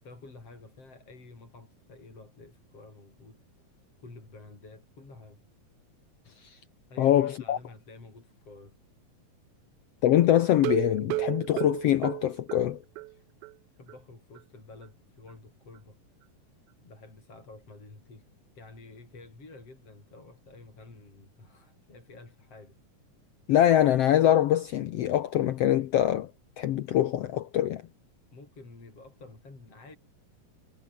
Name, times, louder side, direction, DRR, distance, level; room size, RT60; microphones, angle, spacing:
voice 1, 0.0-3.4 4.0-5.4 6.9-8.7 13.1-13.2 13.7-16.0 16.8-18.3 18.6-22.8 28.3-30.0, left 3 dB, 45° left, 7.9 m, -50 dB
voice 2, 7.0-7.6 10.0-12.8 23.5-26.3 26.6-27.8, left 12 dB, 75° left, 1.4 m, -23 dB
sound 1, 10.5-13.1 13.4-13.5 13.9-14.0 14.4-14.5, right 21 dB, 85° right, 1.7 m, -33 dB
omnidirectional pair, 3.9 m